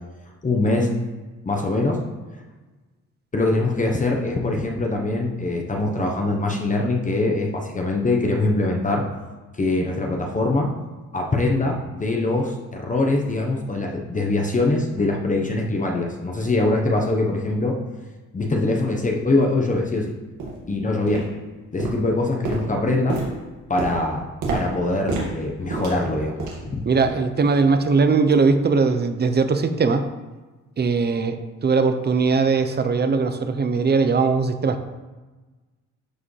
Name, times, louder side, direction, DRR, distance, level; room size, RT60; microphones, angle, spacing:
voice 1, 0.4-0.9 1.4-2.0 3.3-9.0 9.5-10.7 11.1-17.8 18.3-20.1 20.7-21.3 21.7-23.2 23.7-24.2 24.5-26.4 26.6-26.8, left 2 dB, 25° left, 0 dB, 1.0 m, -23 dB
sound 1, 18.4-18.5 19.1-19.2 19.7-19.9 20.4-20.7 21.1-21.5 21.8-26.7 27.0-27.3 27.7-27.9 28.4-28.5, right 3 dB, 85° right, 2.1 m, -30 dB
voice 2, 26.9-30.1 30.8-34.9, right 4 dB, 35° right, 9 dB, 0.8 m, -20 dB
11.0 x 4.8 x 3.3 m, 1.2 s
cardioid pair, 90°, 30 cm